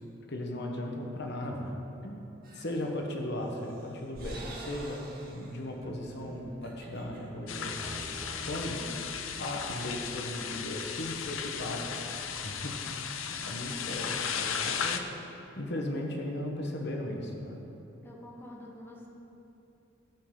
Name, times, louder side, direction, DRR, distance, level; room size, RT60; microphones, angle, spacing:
voice 1, 0.3-1.7 2.0-2.2 2.5-7.8 8.4-8.9 9.4-12.0 12.4-17.6, left 1 dB, 60° left, 1 dB, 1.1 m, -37 dB
sound 1, 2.4-2.9 3.4-5.6 6.0-6.2 6.5-7.2, right 1 dB, 50° right, 1.8 m, -46 dB
sound 2, 5.8-10.7, right 1 dB, 20° right, 0.7 m, -48 dB
sound 3, 7.5-15.0, left 7 dB, 90° left, 0.6 m, -36 dB
voice 2, 18.0-19.1, left 1 dB, 10° left, -2 dB, 1.3 m, -47 dB
16.0 x 5.5 x 3.8 m, 2.9 s
head